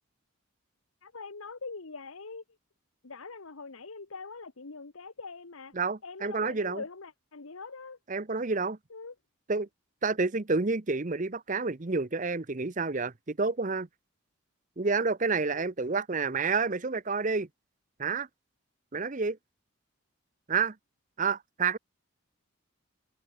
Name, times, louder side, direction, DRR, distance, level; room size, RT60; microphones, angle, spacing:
voice 1, 1.0-2.4 3.0-5.7 6.0-8.0 8.9-9.1 15.4-15.7, left 4 dB, 80° left, 1.3 m, -43 dB
voice 2, 5.7-6.8 8.1-8.8 9.5-9.7 10.0-13.9 14.8-17.5 18.0-18.3 18.9-19.4 20.5-20.7 21.2-21.8, right 4 dB, 35° right, 0.8 m, -29 dB
head